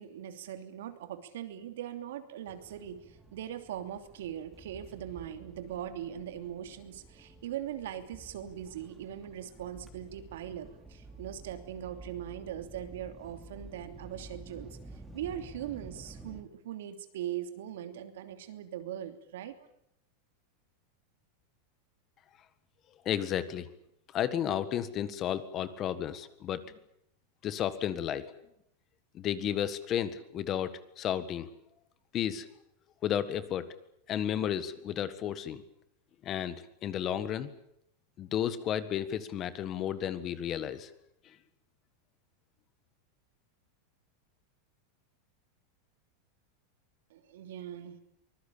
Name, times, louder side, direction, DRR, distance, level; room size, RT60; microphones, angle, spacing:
voice 1, 0.0-14.8 15.1-19.7 47.1-48.0, right 10 dB, 80° right, 8 dB, 2.9 m, -40 dB
sound 1, 2.5-16.4, right 2 dB, 5° right, 3.4 m, -51 dB
voice 2, 23.0-23.7 24.1-26.7 27.4-28.3 29.1-31.5 32.1-32.5 33.0-33.7 34.1-35.6 36.2-37.5 38.2-40.9 41.2-41.3, left 10 dB, 30° left, 13 dB, 1.6 m, -32 dB
24.5 x 20.5 x 8.6 m, 0.77 s
supercardioid pair, 160°, 0 cm